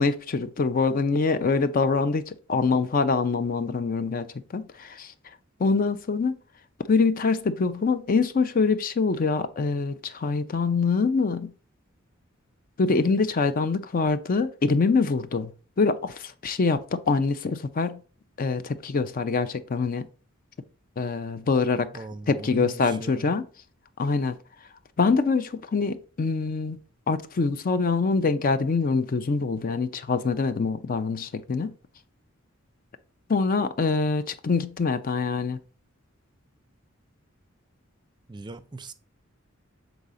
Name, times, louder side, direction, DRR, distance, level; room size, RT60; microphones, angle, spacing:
voice 1, 0.0-4.3 4.5-5.1 5.6-6.4 6.9-11.5 12.8-18.0 18.4-20.1 21.0-21.9 22.3-23.4 24.0-24.3 25.0-26.8 27.1-31.7 33.3-35.6, left 4 dB, 45° left, 0.4 m, -24 dB
voice 2, 21.9-23.4 38.3-38.9, right 3 dB, 20° right, 0.5 m, -39 dB
7.0 x 4.0 x 3.7 m
head